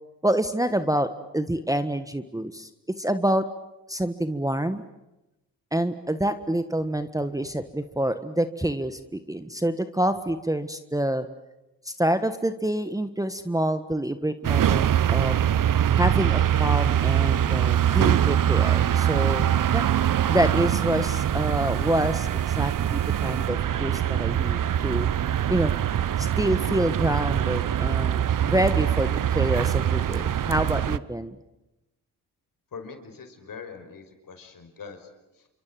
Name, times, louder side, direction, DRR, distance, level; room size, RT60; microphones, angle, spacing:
voice 1, 0.2-2.7 3.0-3.4 3.9-4.8 5.7-11.3 11.8-15.3 16.0-19.9 20.3-25.1 25.5-25.7 26.2-31.3, right 1 dB, 10° right, 10 dB, 1.5 m, -27 dB
sound 1, 14.4-31.0, right 10 dB, 50° right, 0.9 m, -23 dB
sound 2, 16.5-23.5, right 12 dB, 85° right, 1.5 m, -43 dB
voice 2, 32.7-35.5, left 5 dB, 55° left, 6 dB, 5.5 m, -43 dB
28.5 x 24.5 x 7.7 m, 0.95 s
supercardioid pair, 55°, 41 cm